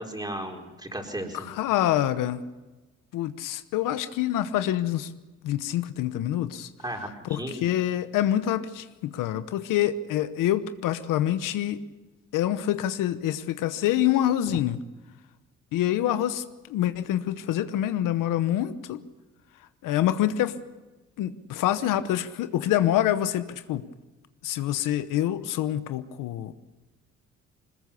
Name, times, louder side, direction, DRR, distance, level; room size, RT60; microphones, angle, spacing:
voice 1, 0.0-1.5 6.8-7.6, right 1 dB, 15° right, 1 dB, 4.3 m, -35 dB
voice 2, 1.3-2.4 3.1-5.1 5.4-6.7 7.3-11.8 12.3-14.8 15.7-19.0 19.8-20.6 21.2-23.8 24.4-26.5, left 12 dB, 90° left, 12 dB, 1.0 m, -26 dB
21.0 x 20.5 x 6.9 m, 1.2 s
cardioid pair, 85°, 31 cm